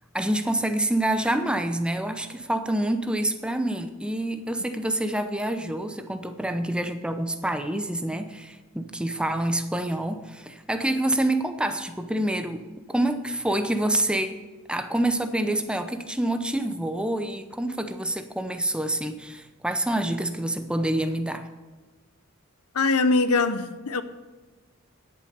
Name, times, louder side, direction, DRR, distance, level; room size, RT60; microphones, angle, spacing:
voice 1, 0.1-12.6 12.9-14.3 14.7-21.5, right 1 dB, 5° right, 8 dB, 0.7 m, -27 dB
voice 2, 22.7-24.0, left 3 dB, 85° left, 12 dB, 0.8 m, -22 dB
10.0 x 8.7 x 6.7 m, 1.3 s
head